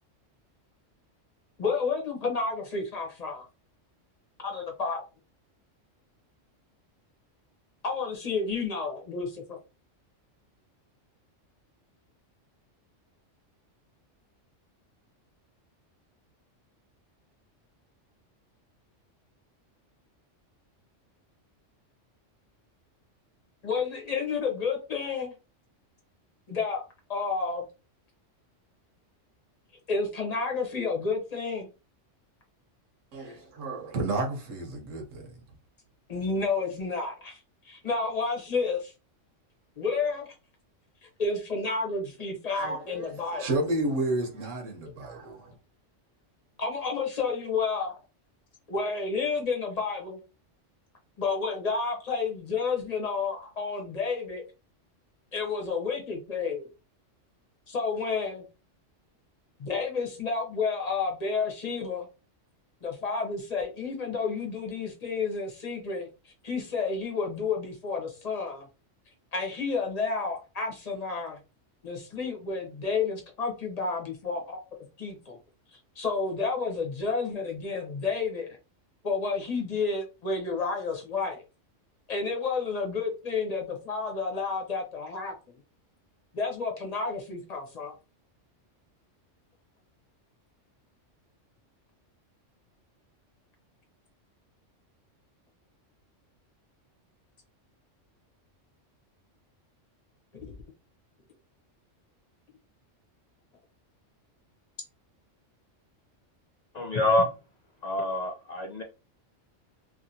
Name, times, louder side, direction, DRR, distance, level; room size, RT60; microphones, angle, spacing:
voice 1, 1.6-3.5 4.4-5.0 7.8-9.6 23.6-25.3 26.5-26.8 27.1-27.6 29.9-31.7 36.1-37.4 37.6-38.9 39.8-40.3 41.0-43.4 44.8-44.9 45.2-45.3 46.6-48.0 48.7-50.2 51.2-54.4 55.3-56.7 57.7-58.4 59.6-62.1 62.8-68.7 69.3-71.4 71.8-74.6 75.0-75.4 76.0-78.6 79.0-81.4 82.1-85.3 86.3-87.9 100.3-100.5, left 4 dB, 35° left, 1.0 m, -30 dB
voice 2, 33.1-35.3 42.6-45.6, right 2 dB, 80° right, 1.2 m, -31 dB
voice 3, 106.7-107.3 107.8-108.8, left 1 dB, 75° left, 0.3 m, -26 dB
2.9 x 2.7 x 2.7 m
omnidirectional pair, 1.3 m